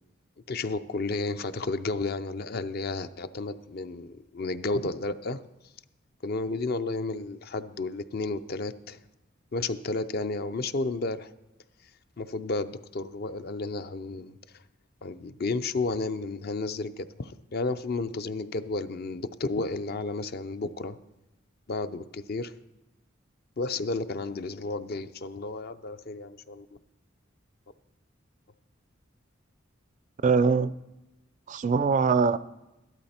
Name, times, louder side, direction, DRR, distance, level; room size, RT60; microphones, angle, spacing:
voice 1, 0.5-5.4 6.2-9.0 9.5-11.3 12.2-14.4 15.0-21.0 21.7-22.5 23.6-26.7, left 3 dB, 50° left, 11 dB, 0.5 m, -32 dB
voice 2, 30.2-30.7 31.5-32.4, right 5 dB, 40° right, 15 dB, 0.3 m, -22 dB
13.0 x 12.0 x 4.3 m, 0.97 s
head